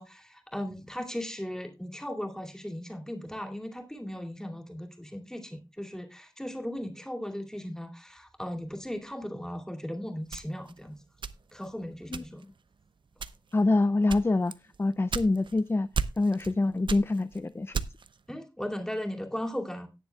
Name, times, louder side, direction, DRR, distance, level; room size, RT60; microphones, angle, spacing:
voice 1, 0.0-11.0 11.5-12.4 18.3-19.9, equal, 5° left, 3 dB, 2.5 m, -37 dB
sound 1, 10.3-11.7 12.1-12.6 13.1-13.6 14.1-15.6 15.9-16.6 16.8-18.2, right 5 dB, 80° right, 0.6 m, -34 dB
voice 2, 13.5-14.5 14.8-15.9 16.2-17.8, left 2 dB, 30° left, 13 dB, 0.4 m, -25 dB
18.0 x 7.0 x 2.3 m, 0.27 s
wide cardioid pair, 70°, 8 cm